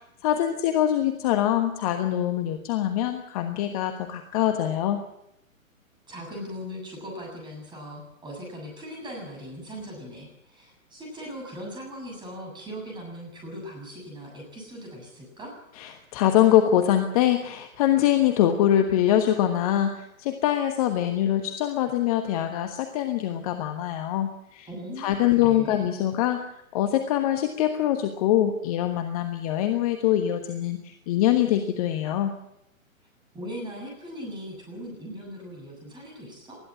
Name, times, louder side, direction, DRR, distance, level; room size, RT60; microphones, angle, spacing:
voice 1, 0.2-5.0 15.8-24.7 25.0-26.4 26.7-32.3, left 11 dB, 25° left, 7 dB, 1.3 m, -24 dB
voice 2, 6.1-15.5 24.7-25.8 33.3-36.6, equal, 10° right, 0 dB, 7.4 m, -39 dB
20.0 x 13.5 x 9.5 m, 0.79 s
figure-of-eight pair, 125°, 42 cm